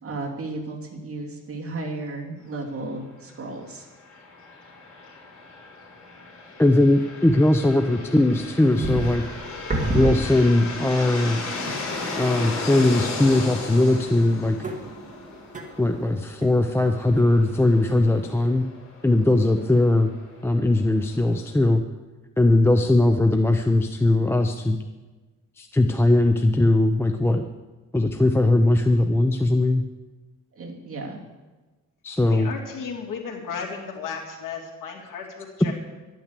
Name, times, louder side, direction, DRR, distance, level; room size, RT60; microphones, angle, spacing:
voice 1, 0.0-3.8 30.6-31.2, right 2 dB, 45° right, 0 dB, 2.5 m, -34 dB
sound 1, 3.9-21.5, left 3 dB, 55° left, 4.2 m, -36 dB
voice 2, 6.6-9.2 9.9-11.4 12.2-14.6 15.8-18.7 19.0-20.1 20.4-21.8 22.4-24.8 25.6-27.4 27.9-29.8 32.0-32.5, left 2 dB, 10° left, 6 dB, 0.5 m, -20 dB
sound 2, 8.3-10.8 11.2-11.3 11.7-12.2 12.8-13.4 13.7-17.6 17.9-18.5, right 2 dB, 25° right, 1.9 m, -31 dB
voice 3, 32.2-35.7, left 6 dB, 85° left, 0 dB, 2.7 m, -34 dB
12.0 x 9.1 x 8.2 m, 1.2 s
wide cardioid pair, 140°, 31 cm